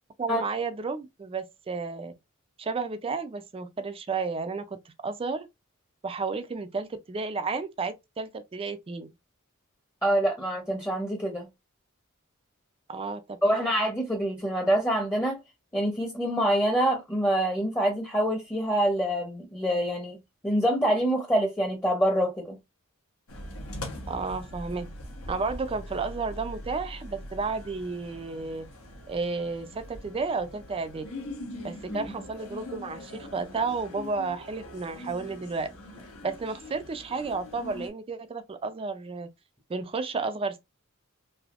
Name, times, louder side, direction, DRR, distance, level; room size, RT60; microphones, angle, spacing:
voice 1, 0.2-2.1 2.6-5.5 6.0-9.1 12.9-13.7 24.1-24.9 25.3-28.7 29.1-31.0 31.6-35.7 36.2-39.3 39.7-40.6, right 4 dB, 25° right, 0.4 m, -32 dB
voice 2, 10.0-11.5 13.4-15.4 15.7-20.2 20.4-22.6 31.9-32.0, right 1 dB, 10° left, 0.7 m, -26 dB
sound 1, 23.3-37.9, left 1 dB, 70° left, 1.0 m, -42 dB
3.4 x 2.7 x 2.4 m
head